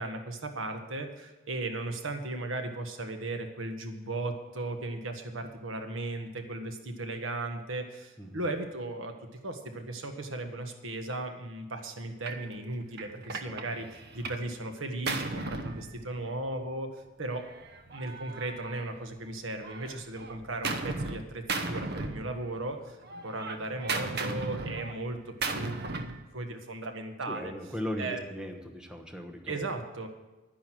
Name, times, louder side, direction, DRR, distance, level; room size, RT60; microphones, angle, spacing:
voice 1, 0.0-9.1 9.4-17.5 17.9-27.5 28.0-28.2 29.5-30.1, right 2 dB, 85° right, 5 dB, 1.5 m, -36 dB
Gunshot gunfire, 12.3-12.5 13.0-14.5 14.8-16.5 17.4-19.3 19.6-21.2 21.5-22.7 23.0-26.2, right 3 dB, 55° right, 1.0 m, -36 dB
voice 2, 27.3-29.7, equal, 5° right, 3 dB, 1.1 m, -38 dB
11.0 x 10.5 x 6.2 m, 1.1 s
head